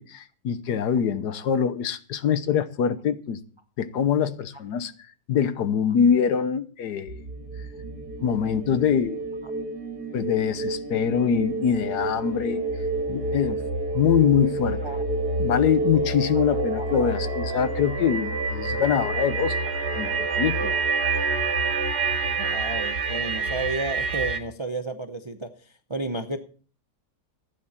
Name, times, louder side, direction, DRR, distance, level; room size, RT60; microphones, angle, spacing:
voice 1, 0.0-3.4 3.8-4.9 5.3-7.2 8.2-9.2 10.1-12.6 13.1-13.6 13.9-14.8 15.4-19.6 19.9-20.8, left 7 dB, 65° left, 1.4 m, -24 dB
sound 1, 7.1-24.4, right 3 dB, 60° right, 2.1 m, -28 dB
voice 2, 16.8-17.1 22.3-26.4, right 2 dB, 40° right, 0.4 m, -32 dB
15.0 x 9.9 x 4.3 m
omnidirectional pair, 1.9 m